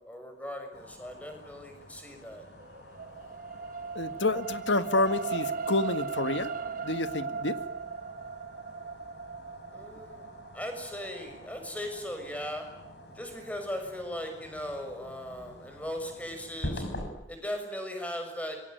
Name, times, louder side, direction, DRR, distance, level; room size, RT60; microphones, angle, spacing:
voice 1, 0.0-2.5 9.7-10.3 10.5-12.6 13.1-16.8 17.3-18.6, equal, 10° left, 5 dB, 6.6 m, -38 dB
sound 1, 0.7-17.1, left 1 dB, 65° left, 6.6 m, -46 dB
sound 2, 2.2-14.7 15.2-15.3, right 5 dB, 45° right, 1.5 m, -38 dB
voice 2, 3.9-6.5 6.8-7.6, left 2 dB, 85° left, 10 dB, 1.8 m, -28 dB
27.0 x 23.0 x 9.3 m, 0.87 s
head